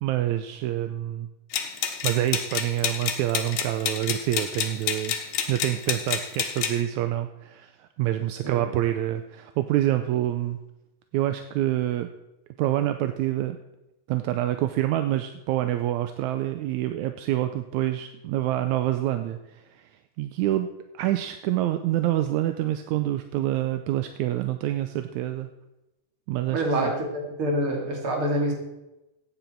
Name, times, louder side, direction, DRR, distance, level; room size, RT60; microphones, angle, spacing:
voice 1, 0.0-1.3 1.8-10.6 11.1-12.1 12.6-13.6 14.1-19.9 20.2-20.7 20.9-25.5 26.3-26.9, right 13 dB, 80° right, 9 dB, 1.9 m, -27 dB
sound 1, 1.5-6.8, left 8 dB, 85° left, 2.8 m, -29 dB
voice 2, 26.5-28.5, right 1 dB, 40° right, 0 dB, 3.3 m, -26 dB
15.5 x 9.3 x 4.5 m, 0.94 s
omnidirectional pair, 3.7 m